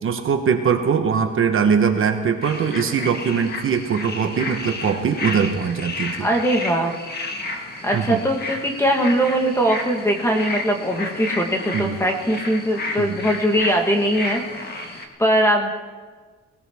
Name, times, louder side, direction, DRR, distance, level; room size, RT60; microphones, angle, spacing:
voice 1, 0.0-6.3 7.9-8.2 11.7-12.0 13.0-13.2, right 6 dB, 45° right, 6 dB, 1.0 m, -21 dB
sound 1, 2.4-15.1, left 2 dB, 35° left, 1.5 m, -32 dB
voice 2, 6.2-6.9 7.8-14.4 14.7-15.7, right 1 dB, 10° left, 3 dB, 1.4 m, -21 dB
21.0 x 16.5 x 3.5 m, 1.4 s
cardioid pair, 180°, 30 cm